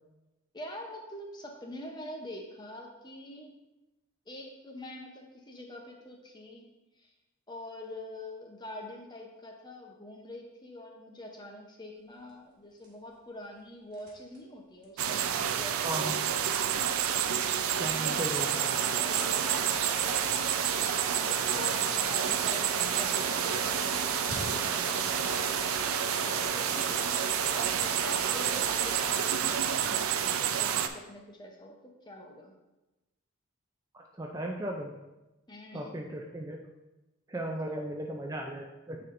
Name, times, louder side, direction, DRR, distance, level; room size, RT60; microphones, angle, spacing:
voice 1, 0.5-3.5 4.3-6.7 7.0-7.1 7.5-17.5 17.8-19.5 20.0-20.2 21.1-32.5 35.5-36.0, left 1 dB, 20° left, 1 dB, 0.7 m, -46 dB
sound 1, 11.9-28.9, right 1 dB, 40° right, 1.7 m, -52 dB
sound 2, 15.0-30.9, right 9 dB, 80° right, 0.4 m, -29 dB
voice 2, 15.8-16.2 17.8-18.7 33.9-34.9 35.7-36.6 37.3-39.0, right 1 dB, 15° right, 1 dB, 0.4 m, -36 dB
sound 3, 18.5-29.3, equal, ahead, 1.2 m, -40 dB
9.3 x 4.3 x 2.6 m, 1.0 s
head